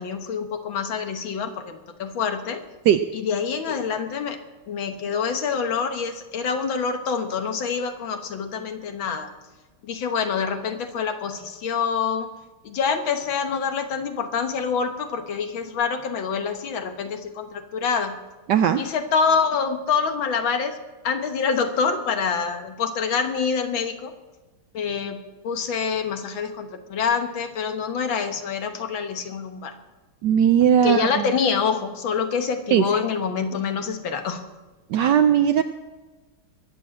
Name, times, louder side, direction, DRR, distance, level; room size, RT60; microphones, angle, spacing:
voice 1, 0.0-2.6 3.1-4.4 4.7-9.3 9.8-12.3 12.6-18.2 18.8-20.8 21.0-24.1 24.7-29.7 30.8-34.4, left 6 dB, 65° left, 7 dB, 1.9 m, -26 dB
voice 2, 18.5-18.8 30.2-31.1 32.7-32.8 34.9-35.6, right 9 dB, 70° right, 10 dB, 1.0 m, -17 dB
22.0 x 7.8 x 7.5 m, 1.2 s
omnidirectional pair, 2.4 m